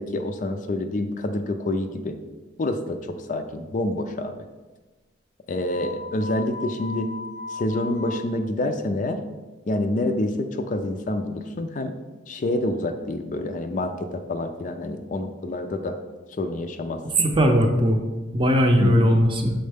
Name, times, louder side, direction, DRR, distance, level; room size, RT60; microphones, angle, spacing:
voice 1, 0.0-2.2 2.6-4.3 5.5-7.1 7.5-9.2 9.7-11.9 12.3-16.0 16.4-17.0 18.8-19.2, left 1 dB, 40° left, 7 dB, 0.4 m, -27 dB
sound 1, 5.6-8.2, left 4 dB, 80° right, 0.6 m, -36 dB
voice 2, 17.2-18.0 18.3-19.5, equal, 25° right, 3 dB, 0.6 m, -19 dB
6.4 x 4.3 x 3.4 m, 1.2 s
head